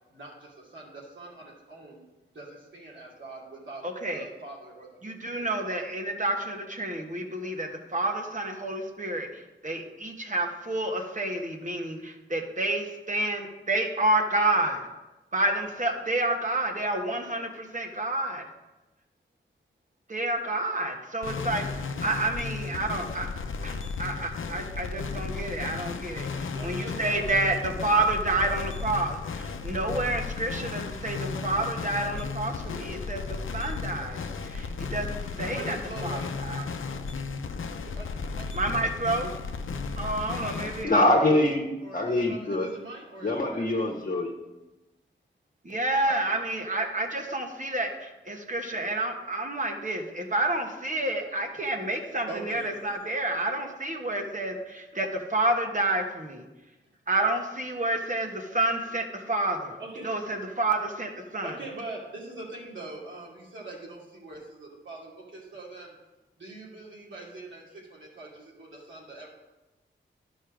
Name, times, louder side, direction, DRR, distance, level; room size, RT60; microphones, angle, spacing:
voice 1, 0.1-2.0 2.3-5.5 7.4-7.5 26.5-27.5 35.4-36.3 37.8-39.0 41.8-43.7 46.0-46.2 52.3-52.8 59.8-60.1 61.4-66.0 66.4-69.3, right 2 dB, 70° right, -5 dB, 2.7 m, -43 dB
voice 2, 3.8-4.3 5.0-14.8 15.3-18.5 20.1-23.3 23.6-35.8 36.0-36.6 38.5-39.3 40.0-41.0 45.6-56.4 57.1-59.8 60.0-61.5, right 2 dB, 40° right, 2 dB, 1.4 m, -29 dB
sound 1, 21.2-40.8, left 4 dB, 85° left, 0.6 m, -34 dB
voice 3, 40.8-41.6 41.9-42.7 43.2-44.3, left 1 dB, 45° left, 0 dB, 1.3 m, -23 dB
11.0 x 5.4 x 5.0 m, 1.1 s
cardioid pair, 60°, 20 cm